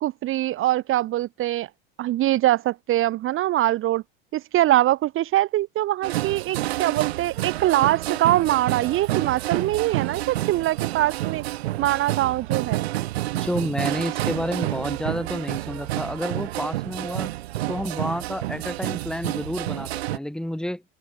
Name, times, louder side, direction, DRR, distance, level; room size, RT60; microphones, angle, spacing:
voice 1, 0.0-1.7 2.0-4.0 4.3-11.4 11.8-12.9, right 14 dB, 40° right, 1.1 m, -23 dB
sound 1, 6.0-20.2, right 16 dB, 85° right, 1.5 m, -29 dB
voice 2, 13.3-17.3 17.7-20.8, left 1 dB, ahead, 3.2 m, -30 dB
open air
hypercardioid pair, 100°, 31 cm